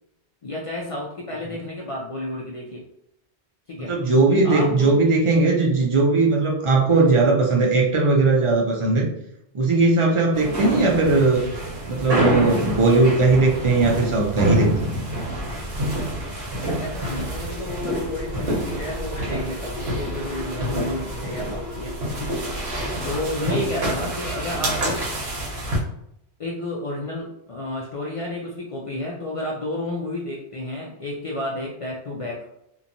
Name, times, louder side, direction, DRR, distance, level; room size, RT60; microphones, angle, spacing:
voice 1, 0.4-2.8 3.7-3.9 4.4-5.0 6.9-7.1 16.6-22.0 23.0-25.0 26.4-32.5, left 1 dB, 65° left, -3 dB, 0.3 m, -31 dB
voice 2, 3.8-9.1 9.5-11.5 11.8-14.9, right 3 dB, 55° right, -1 dB, 0.3 m, -18 dB
sound 1, 10.3-25.8, right 1 dB, 70° right, 1.1 m, -27 dB
sound 2, 15.6-15.7 16.0-25.1 25.5-25.6, left 3 dB, 80° left, 0.8 m, -40 dB
2.8 x 2.2 x 2.5 m, 0.78 s
omnidirectional pair, 1.1 m